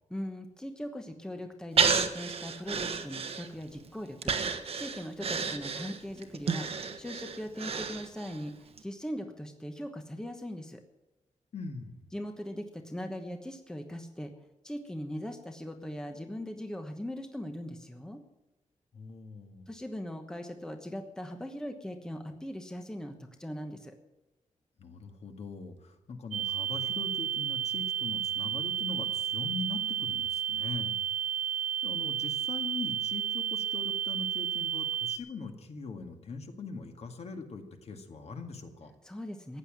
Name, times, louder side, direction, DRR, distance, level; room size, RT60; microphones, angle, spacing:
voice 1, 0.1-8.5 8.8-10.8 12.1-14.3 14.6-18.2 19.7-23.9 39.0-39.6, equal, 5° left, 5 dB, 1.1 m, -40 dB
Breathing, 1.8-3.7 4.2-8.4 8.8-8.9, right 5 dB, 50° right, 1.3 m, -31 dB
voice 2, 11.5-12.1 18.9-19.7 24.8-31.0 31.8-38.9, left 4 dB, 55° left, 5 dB, 1.9 m, -41 dB
sound 1, 26.3-35.2, right 9 dB, 75° right, 3.0 m, -32 dB
15.0 x 9.9 x 7.5 m, 1.0 s
wide cardioid pair, 175°, 13 cm